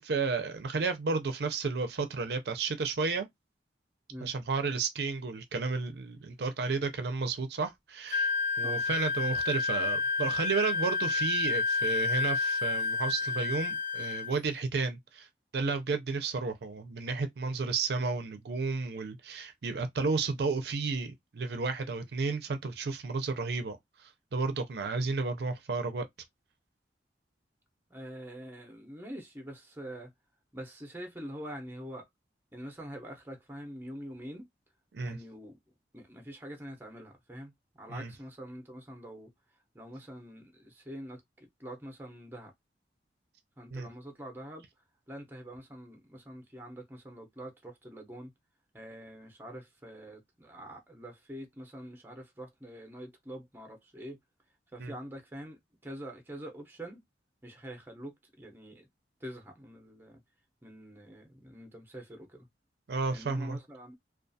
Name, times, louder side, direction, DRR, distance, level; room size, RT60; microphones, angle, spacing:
voice 1, 0.0-3.3 4.2-15.3 15.5-26.0 34.9-35.2 37.9-38.1 43.7-43.9 54.8-54.9 62.9-63.6, right 4 dB, 65° right, 0.4 m, -32 dB
Wind instrument woodwind instrument, 8.1-14.3, left 4 dB, 45° left, 0.4 m, -30 dB
voice 2, 27.9-30.1 30.5-32.1 32.5-34.5 35.0-42.5 43.6-44.7 45.1-48.3 48.7-54.2 54.7-57.0 57.4-58.9 59.2-60.2 60.6-62.5 63.1-63.9, equal, 10° right, 0.6 m, -45 dB
2.3 x 2.3 x 2.6 m
head